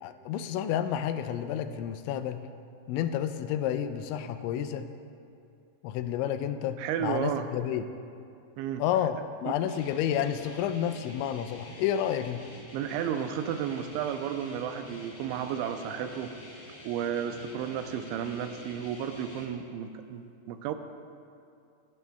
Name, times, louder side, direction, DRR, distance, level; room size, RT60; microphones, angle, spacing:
voice 1, 0.0-2.4 2.9-4.9 5.8-7.8 8.8-12.4, left 10 dB, 85° left, 9 dB, 2.9 m, -30 dB
voice 2, 6.8-7.5 8.6-8.8 9.5-9.6 12.7-16.3 16.9-20.7, right 9 dB, 85° right, 7 dB, 2.9 m, -33 dB
sound 1, 9.7-19.4, left 1 dB, 30° left, 2.5 m, -47 dB
26.0 x 11.0 x 2.3 m, 2.5 s
omnidirectional pair, 5.3 m